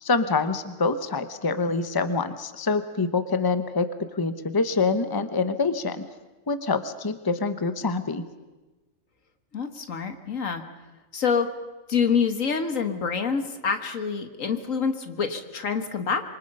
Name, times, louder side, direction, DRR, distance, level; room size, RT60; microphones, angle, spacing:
voice 1, 0.0-3.9 4.1-6.0 6.5-8.2, left 4 dB, 20° left, 10 dB, 0.9 m, -25 dB
voice 2, 9.5-10.6 11.1-11.5 11.9-16.2, left 6 dB, 75° left, 7 dB, 2.0 m, -26 dB
26.5 x 24.0 x 5.5 m, 1.2 s
omnidirectional pair, 1.4 m